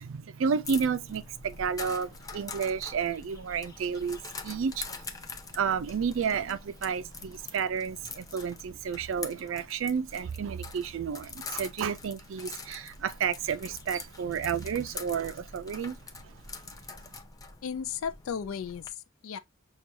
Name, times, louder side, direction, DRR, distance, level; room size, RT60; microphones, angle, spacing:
voice 1, 0.0-4.9 5.5-16.0 16.2-16.3, right 6 dB, 70° right, 0.4 m, -31 dB
sound 1, 0.6-18.9, left 4 dB, 20° left, 0.5 m, -44 dB
voice 2, 17.6-19.4, left 7 dB, 85° left, 0.4 m, -35 dB
6.0 x 2.3 x 2.7 m
head